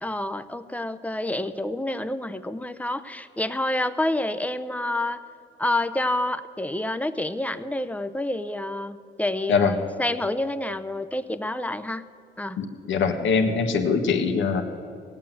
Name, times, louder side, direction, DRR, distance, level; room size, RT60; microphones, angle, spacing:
voice 1, 0.0-5.2 5.6-12.0 12.4-12.6, left 1 dB, 5° left, 11 dB, 0.7 m, -28 dB
voice 2, 12.6-14.6, left 5 dB, 75° left, 5 dB, 1.6 m, -23 dB
18.0 x 9.1 x 7.7 m, 2.4 s
cardioid pair, 90°, 20 cm